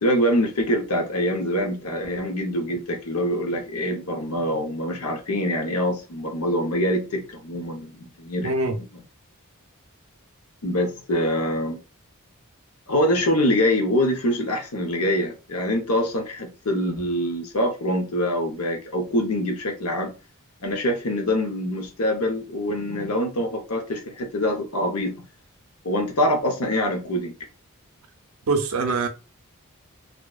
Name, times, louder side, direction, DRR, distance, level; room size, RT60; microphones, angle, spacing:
voice 1, 0.0-8.9 10.6-11.8 12.9-20.1 20.6-25.2 25.8-27.3, equal, 85° left, 0.7 m, -24 dB
voice 2, 8.4-8.8 28.5-29.1, right 3 dB, 70° right, 0.5 m, -23 dB
2.6 x 2.1 x 2.3 m
head